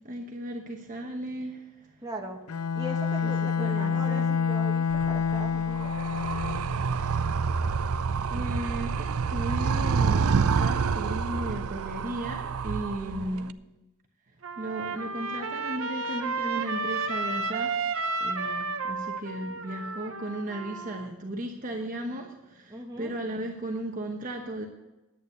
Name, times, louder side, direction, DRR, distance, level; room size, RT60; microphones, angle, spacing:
voice 1, 0.0-2.0 3.2-4.3 8.3-13.5 14.6-17.8 18.2-24.7, right 1 dB, 35° right, 2 dB, 1.1 m, -35 dB
voice 2, 2.0-2.4 2.7-5.9 13.0-13.5 22.7-23.2, equal, 15° right, 0 dB, 1.4 m, -39 dB
Bowed string instrument, 2.5-6.8, left 6 dB, 80° left, 0.5 m, -27 dB
Animal, 4.9-13.5, right 5 dB, 80° right, 0.5 m, -28 dB
Trumpet, 14.4-21.1, right 3 dB, 65° right, 0.9 m, -32 dB
11.0 x 8.8 x 6.7 m, 1.0 s
head